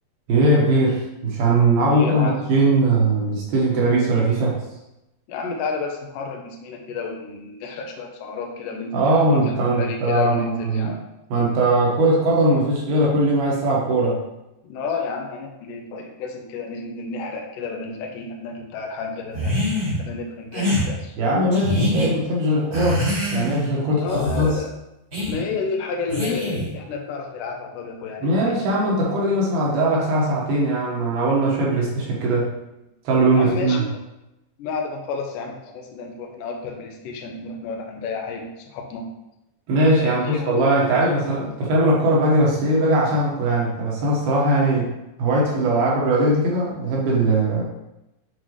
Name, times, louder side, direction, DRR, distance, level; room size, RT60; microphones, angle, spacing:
voice 1, 0.3-4.5 8.9-10.9 11.3-14.2 21.2-23.0 23.3-24.5 28.2-32.5 33.0-33.8 39.7-44.9 45.2-47.6, right 1 dB, 70° right, -4 dB, 2.9 m, -20 dB
voice 2, 1.9-2.4 5.3-11.0 14.6-19.7 20.0-21.1 24.0-24.7 25.3-28.5 33.3-33.9 34.6-39.0 40.0-40.7 45.7-45.9, left 4 dB, 85° left, 1 dB, 1.9 m, -31 dB
sound 1, 19.3-20.0 20.5-20.9 21.5-22.1 22.7-23.7 24.1-24.5 25.1-25.4 26.1-26.7, left 1 dB, 35° right, 1.5 m, -24 dB
7.9 x 3.9 x 3.1 m, 0.91 s
omnidirectional pair, 5.0 m